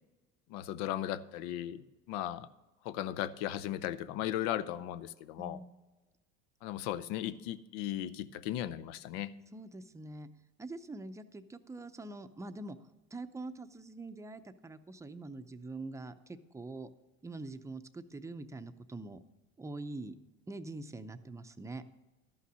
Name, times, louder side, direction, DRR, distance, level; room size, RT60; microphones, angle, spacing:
voice 1, 0.5-2.5 2.8-5.6 6.6-9.3, left 12 dB, 80° left, 14 dB, 0.6 m, -37 dB
voice 2, 5.4-5.8 9.5-10.3 10.6-12.8 13.1-16.9 17.2-19.2 19.6-20.2 20.5-21.8, right 2 dB, 10° right, 10 dB, 0.6 m, -44 dB
12.5 x 5.7 x 6.2 m, 1.2 s
supercardioid pair, 100°, 29 cm